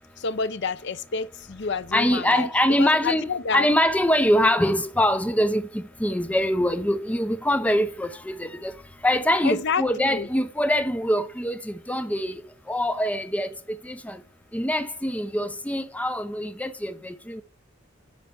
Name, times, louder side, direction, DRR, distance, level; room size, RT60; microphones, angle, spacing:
voice 1, 0.2-3.7 9.4-10.3, left 5 dB, 55° left, 0.6 m, -29 dB
sound 1, 1.4-2.0 2.5-5.7 5.9-6.8 7.3-10.5 10.7-11.0, equal, 20° right, 2.9 m, -56 dB
voice 2, 1.9-8.7 9.0-12.4 12.7-13.5 13.8-14.2 14.5-17.4, equal, 5° left, 0.4 m, -24 dB
10.0 x 4.5 x 6.9 m
head